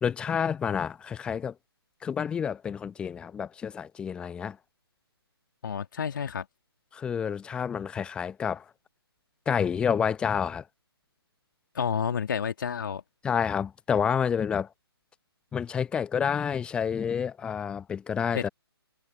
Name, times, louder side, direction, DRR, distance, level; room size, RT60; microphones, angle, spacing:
voice 1, 0.0-1.5 2.0-4.6 6.9-8.6 9.5-10.6 13.2-14.7 15.5-18.5, left 7 dB, 5° left, 0.7 m, -29 dB
voice 2, 5.6-6.5 11.7-13.0 18.3-18.5, left 7 dB, 50° left, 2.4 m, -30 dB
figure-of-eight pair, 145°, 13 cm